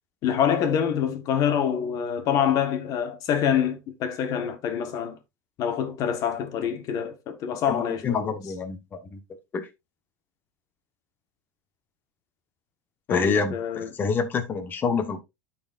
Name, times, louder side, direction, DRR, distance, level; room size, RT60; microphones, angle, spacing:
voice 1, 0.2-5.2 5.6-8.3 13.1-13.9, left 8 dB, 40° left, 1.4 m, -26 dB
voice 2, 7.7-9.2 9.5-9.7 13.1-15.2, left 5 dB, 20° left, 1.2 m, -27 dB
12.5 x 4.3 x 2.5 m
supercardioid pair, 150°, 9 cm